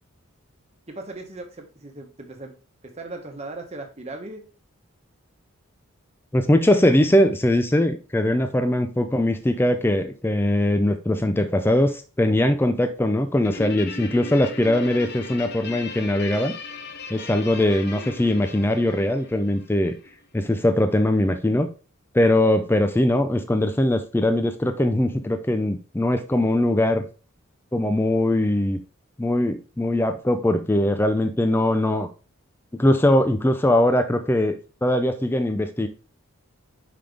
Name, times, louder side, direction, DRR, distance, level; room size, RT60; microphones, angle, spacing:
voice 1, 0.9-2.5 2.8-4.4, right 2 dB, 30° right, 3 dB, 1.1 m, -37 dB
voice 2, 6.3-16.5 17.1-19.9 20.3-21.7 22.1-27.0 27.7-28.8 29.2-32.1 32.7-34.6 34.8-35.9, left 1 dB, 10° left, 8 dB, 0.4 m, -21 dB
Guitar, 13.4-20.1, left 3 dB, 50° left, 0.8 m, -37 dB
5.7 x 5.1 x 3.4 m, 0.35 s
head